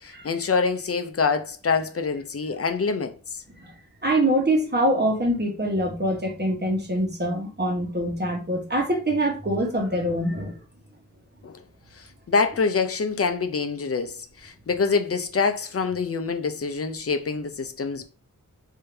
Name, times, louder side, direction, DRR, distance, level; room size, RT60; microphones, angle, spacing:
voice 1, 0.0-3.4 11.4-11.6 12.0-18.0, left 4 dB, 45° left, 0.5 m, -26 dB
voice 2, 4.0-10.6, right 1 dB, 30° right, 1.2 m, -24 dB
3.7 x 2.7 x 3.3 m
wide cardioid pair, 90°, 32 cm